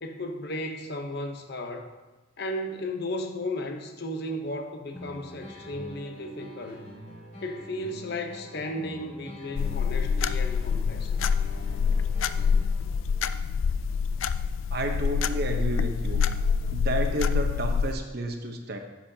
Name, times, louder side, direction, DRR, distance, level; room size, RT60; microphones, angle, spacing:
voice 1, 0.0-1.9 2.4-6.9 7.4-11.2, left 1 dB, 55° left, 5 dB, 0.9 m, -35 dB
sound 1, 4.9-12.9, equal, 40° left, 1.9 m, -44 dB
sound 2, 9.6-17.9, left 6 dB, 90° left, 0.4 m, -26 dB
voice 2, 14.7-16.2 16.7-18.8, right 2 dB, 55° right, 4 dB, 0.9 m, -31 dB
10.0 x 7.6 x 2.8 m, 1.1 s
head